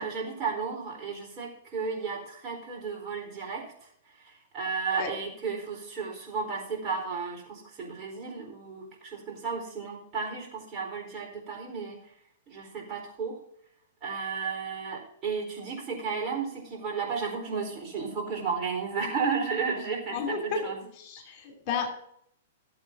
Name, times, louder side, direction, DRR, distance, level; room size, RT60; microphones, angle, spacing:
voice 1, 0.0-3.6 4.2-12.0 12.5-13.4 14.0-20.9, right 5 dB, 25° right, -1 dB, 4.1 m, -33 dB
voice 2, 20.1-20.6 21.0-21.9, left 5 dB, 35° left, 3 dB, 2.8 m, -32 dB
17.5 x 8.1 x 2.7 m, 0.69 s
figure-of-eight pair, 105°, 0 cm